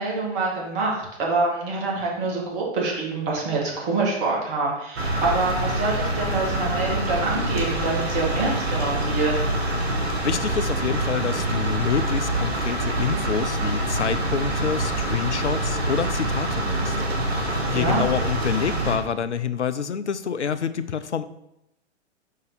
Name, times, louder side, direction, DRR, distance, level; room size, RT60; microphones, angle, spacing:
voice 1, 0.0-9.4 17.5-18.1, right 3 dB, 35° right, -3 dB, 1.9 m, -26 dB
sound 1, 5.0-19.0, right 1 dB, 65° right, 1.6 m, -25 dB
voice 2, 10.0-17.0 17.3-21.2, left 7 dB, 80° left, 12 dB, 0.6 m, -27 dB
5.4 x 5.3 x 3.9 m, 0.83 s
figure-of-eight pair, 105°, 34 cm